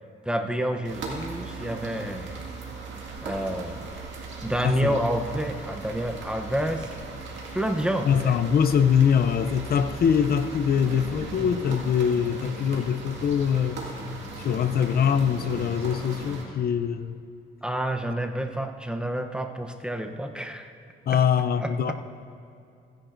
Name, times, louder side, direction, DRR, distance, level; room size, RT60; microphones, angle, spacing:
voice 1, 0.2-2.3 3.2-3.9 4.4-7.0 7.5-8.4 17.6-20.7 21.1-21.2 21.6-21.9, right 1 dB, 5° right, 5 dB, 0.8 m, -29 dB
sound 1, 0.8-16.4, right 3 dB, 70° right, 2.0 m, -38 dB
voice 2, 4.6-5.0 8.0-13.8 14.4-17.2 21.1-21.9, left 7 dB, 50° left, 11 dB, 0.6 m, -23 dB
16.0 x 10.0 x 2.6 m, 2.6 s
cardioid pair, 90°, 20 cm